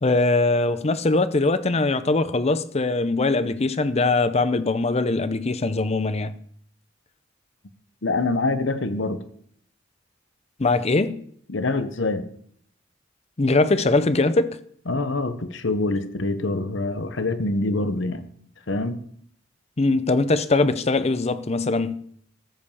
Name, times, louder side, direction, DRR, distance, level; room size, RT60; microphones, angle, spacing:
voice 1, 0.0-6.4 10.6-11.2 13.4-14.6 19.8-22.0, left 3 dB, 35° left, 0.6 m, -21 dB
voice 2, 8.0-9.2 11.5-12.3 14.9-18.3 18.7-19.0, left 2 dB, 70° left, 0.9 m, -25 dB
14.0 x 5.2 x 7.1 m
head